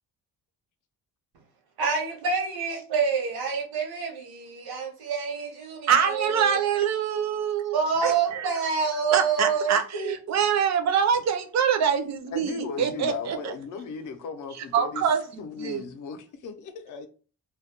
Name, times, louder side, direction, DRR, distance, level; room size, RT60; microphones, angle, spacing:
voice 1, 1.8-6.6 7.7-9.8, right 5 dB, 85° right, 0.9 m, -27 dB
voice 2, 5.9-8.6 9.1-13.5 14.6-15.2 15.6-15.8, right 7 dB, 50° right, 0.4 m, -25 dB
voice 3, 12.3-15.0 15.4-17.1, left 5 dB, 60° left, 0.5 m, -36 dB
2.2 x 2.0 x 2.8 m
cardioid pair, 135°, 36 cm